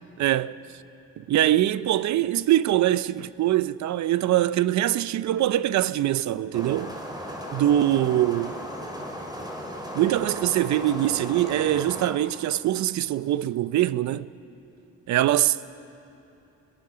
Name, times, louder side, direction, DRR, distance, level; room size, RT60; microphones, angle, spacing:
voice 1, 0.2-0.6 1.2-6.9 7.5-8.5 9.9-14.3 15.1-15.6, right 13 dB, 70° right, 0.6 m, -23 dB
sound 1, 6.5-12.1, equal, 15° right, 3.9 m, -36 dB
30.0 x 21.0 x 5.7 m
cardioid pair, 90°, 30 cm